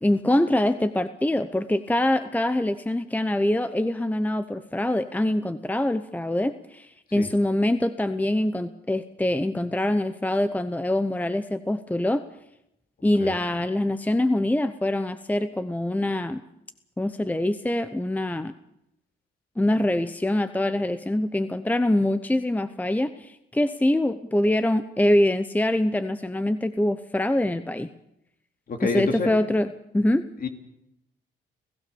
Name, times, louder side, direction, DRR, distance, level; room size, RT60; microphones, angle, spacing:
voice 1, 0.0-12.2 13.0-16.4 17.0-18.5 19.6-27.9 28.8-29.7 29.9-30.2, left 1 dB, 10° left, 11 dB, 0.9 m, -24 dB
voice 2, 28.7-29.3 30.4-30.5, left 4 dB, 45° left, 5 dB, 3.1 m, -28 dB
30.0 x 15.5 x 7.0 m, 0.84 s
cardioid pair, 90°, 20 cm